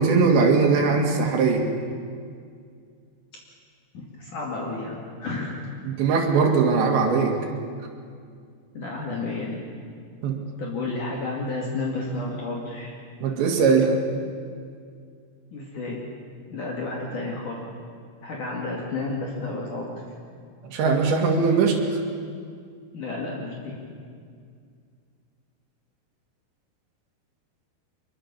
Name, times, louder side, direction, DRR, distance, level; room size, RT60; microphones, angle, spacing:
voice 1, 0.0-1.7 5.9-7.4 10.2-10.4 13.2-14.0 20.6-22.0, right 4 dB, 85° right, 1 dB, 4.5 m, -20 dB
voice 2, 3.9-5.6 8.8-9.6 10.6-12.9 15.5-16.0 16.5-17.6 18.2-19.9 22.9-23.8, left 3 dB, 50° left, -2 dB, 3.6 m, -31 dB
25.5 x 22.5 x 7.1 m, 2.2 s
omnidirectional pair, 5.0 m